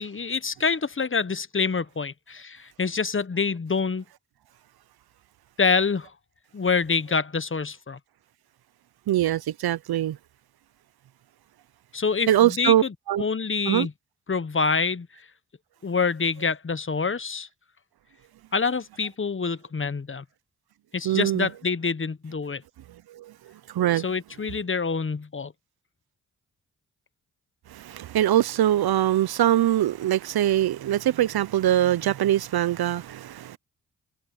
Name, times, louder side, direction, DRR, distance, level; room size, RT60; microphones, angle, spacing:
voice 1, 0.0-4.0 5.6-6.1 6.5-8.0 11.9-13.9 14.3-15.1 15.8-17.5 18.5-20.2 20.9-22.6 24.0-25.5, left 5 dB, 30° left, 1.2 m, -26 dB
voice 2, 9.1-10.2 12.3-13.2 13.7-13.9 21.0-21.5 23.1-23.3 23.7-24.0 27.7-33.6, right 12 dB, 65° right, 1.0 m, -23 dB
supercardioid pair, 45°, 39 cm